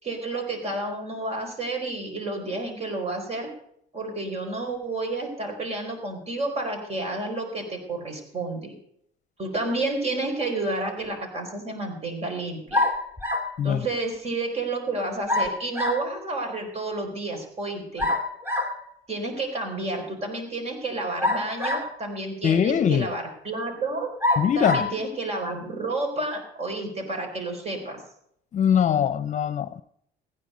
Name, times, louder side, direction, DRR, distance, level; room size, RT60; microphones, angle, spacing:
voice 1, 0.0-3.5 3.9-8.7 9.4-12.8 13.6-18.1 19.1-24.1 24.5-28.0, right 2 dB, 40° right, 4 dB, 4.7 m, -30 dB
sound 1, 12.7-13.6 15.3-16.1 18.0-18.8 21.2-22.1 22.8-22.9 24.2-24.9, left 2 dB, 10° right, 2.2 m, -25 dB
voice 2, 22.4-23.1 24.4-24.8 28.5-29.8, left 8 dB, 45° left, 14 dB, 0.8 m, -22 dB
15.5 x 10.0 x 5.2 m, 0.69 s
cardioid pair, 110°, 17 cm